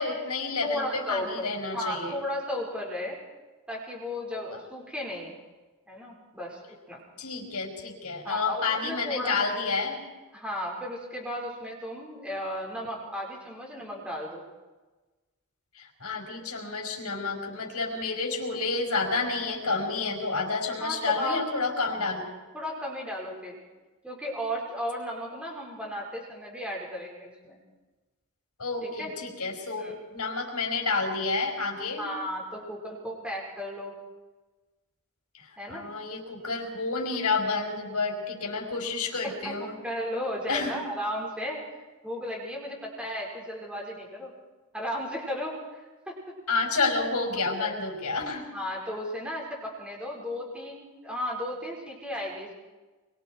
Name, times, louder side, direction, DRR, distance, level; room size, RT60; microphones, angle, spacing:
voice 1, 0.0-2.2 4.5-4.6 7.2-10.0 15.8-22.4 28.6-32.1 35.3-39.8 40.5-40.7 46.5-48.5, left 3 dB, 80° left, 1 dB, 5.2 m, -30 dB
voice 2, 0.6-3.2 3.7-5.4 5.9-6.6 6.9-7.0 8.2-9.4 10.3-14.4 20.8-21.4 22.5-23.6 24.0-27.6 28.8-29.1 29.8-30.0 32.0-33.9 35.6-35.9 39.2-41.6 42.0-44.3 44.7-46.2 47.4-47.8 48.5-52.5, equal, 5° right, -2 dB, 5.5 m, -35 dB
25.5 x 23.5 x 4.8 m, 1.2 s
head